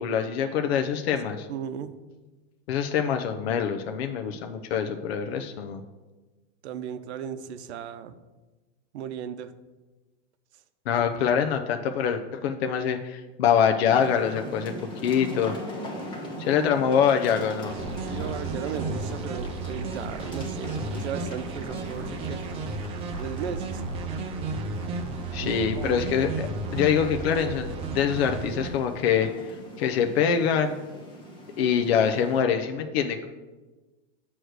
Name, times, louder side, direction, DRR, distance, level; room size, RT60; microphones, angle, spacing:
voice 1, 0.0-1.5 2.7-5.8 10.9-14.7 15.0-15.6 16.5-17.7 25.3-30.8 31.6-33.3, left 7 dB, 70° left, 6 dB, 0.6 m, -25 dB
voice 2, 1.5-1.9 6.6-8.1 8.9-9.5 16.3-16.8 18.0-22.4 23.2-23.8 25.4-26.0, right 8 dB, 80° right, 12 dB, 0.7 m, -36 dB
sound 1, 13.8-32.4, equal, 15° left, 1.1 m, -40 dB
sound 2, 17.7-28.7, right 3 dB, 20° right, 0.4 m, -33 dB
7.9 x 3.1 x 6.3 m, 1.2 s
supercardioid pair, 150°, 33 cm